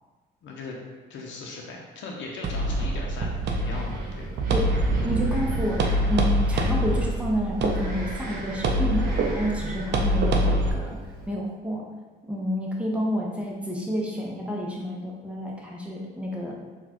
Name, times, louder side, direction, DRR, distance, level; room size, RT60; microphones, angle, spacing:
voice 1, 0.4-0.8 1.1-4.3, left 3 dB, 70° left, -1 dB, 0.6 m, -38 dB
sound 1, 2.4-10.7, right 1 dB, 65° right, 0.5 m, -25 dB
Wind, 3.1-11.3, right 1 dB, 45° right, 1.0 m, -37 dB
voice 2, 5.0-11.0 11.3-11.9 12.3-16.5, equal, 5° right, -3 dB, 0.7 m, -29 dB
3.9 x 2.3 x 2.9 m, 1.3 s
cardioid pair, 90°, 20 cm